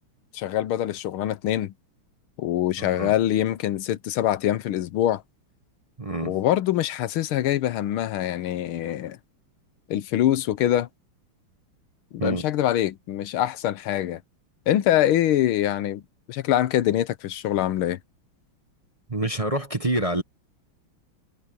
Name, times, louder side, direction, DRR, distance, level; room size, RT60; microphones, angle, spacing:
voice 1, 0.3-1.7 2.4-5.2 6.2-9.2 9.9-10.9 12.1-14.2 14.7-16.0 16.3-18.0, left 12 dB, 85° left, 1.7 m, -24 dB
voice 2, 2.8-3.1 6.0-6.4 12.2-12.5 19.1-20.2, right 1 dB, 20° right, 1.2 m, -27 dB
omnidirectional pair, 2.3 m